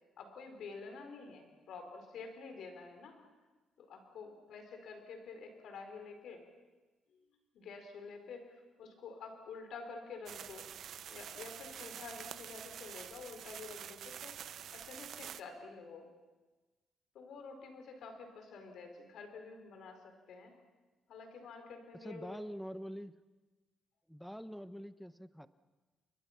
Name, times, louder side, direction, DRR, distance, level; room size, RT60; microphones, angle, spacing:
voice 1, 0.2-3.2 3.8-6.4 7.1-7.2 7.5-10.7 11.1-14.4 14.7-16.1 17.1-20.5 21.1-22.4, left 4 dB, 70° left, 5 dB, 4.5 m, -49 dB
sound 1, 10.3-15.4, right 9 dB, 65° right, 0.7 m, -47 dB
voice 2, 22.0-23.1 24.1-25.5, equal, ahead, 13 dB, 1.0 m, -45 dB
30.0 x 22.0 x 5.9 m, 1.2 s
cardioid pair, 90°, 0 cm